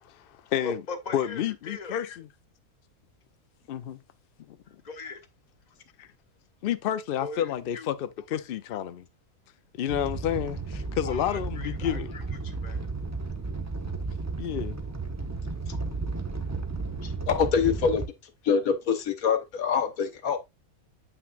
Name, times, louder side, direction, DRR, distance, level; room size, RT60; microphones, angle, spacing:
voice 1, 0.0-0.8 1.1-2.3 3.7-4.0 6.0-6.1 6.6-9.0 9.8-12.1 14.4-14.8, left 10 dB, 90° left, 0.4 m, -30 dB
voice 2, 0.6-2.0 4.8-5.2 7.2-7.9 11.0-12.8, left 4 dB, 30° left, 1.1 m, -39 dB
Animal, 9.9-18.1, right 3 dB, 20° right, 0.5 m, -33 dB
voice 3, 17.0-18.0 18.4-20.4, left 6 dB, 65° left, 1.4 m, -25 dB
8.1 x 5.9 x 2.4 m
omnidirectional pair, 1.7 m